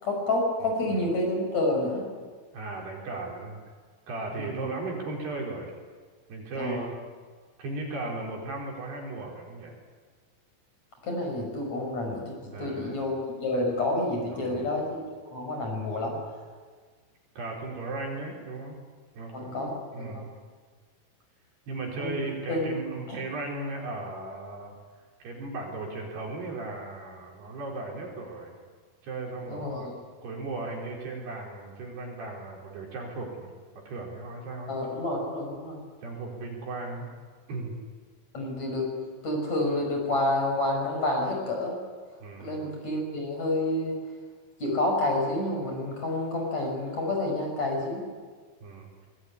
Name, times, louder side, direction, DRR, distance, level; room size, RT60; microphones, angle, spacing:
voice 1, 0.0-2.1 4.3-4.7 6.6-6.9 11.0-14.9 15.3-16.2 19.3-19.7 20.0-20.2 22.0-22.7 23.1-23.2 29.5-29.9 34.7-35.8 38.3-38.9 39.2-41.8 42.4-44.0 44.6-48.0, left 1 dB, 35° left, 1 dB, 6.6 m, -29 dB
voice 2, 2.5-3.6 4.1-5.7 6.3-6.8 7.6-9.8 12.5-13.0 14.3-14.7 17.4-18.8 19.2-20.3 21.7-24.7 25.2-28.6 29.0-29.9 30.2-33.5 33.8-35.0 36.0-37.1 37.5-37.8 42.2-42.7 48.6-48.9, right 2 dB, 55° right, -1 dB, 6.6 m, -36 dB
24.5 x 21.0 x 9.9 m, 1.5 s
omnidirectional pair, 5.6 m